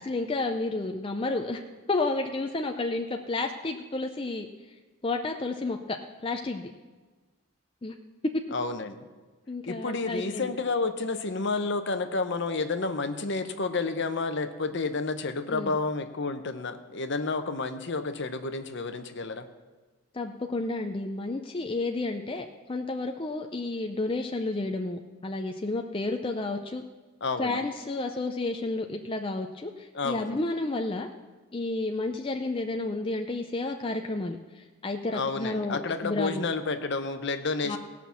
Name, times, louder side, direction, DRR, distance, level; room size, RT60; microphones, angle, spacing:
voice 1, 0.0-1.6 1.9-4.5 5.0-6.0 6.2-6.7 7.8-8.0 8.3-8.4 9.5-10.5 15.5-15.7 20.1-26.8 27.4-31.1 31.5-36.4 37.6-37.8, left 2 dB, 25° left, 4 dB, 0.5 m, -31 dB
voice 2, 8.5-9.0 9.7-19.5 27.2-27.6 29.9-30.4 35.1-37.8, left 3 dB, 55° left, 8 dB, 0.8 m, -30 dB
17.5 x 6.0 x 7.0 m, 1.3 s
head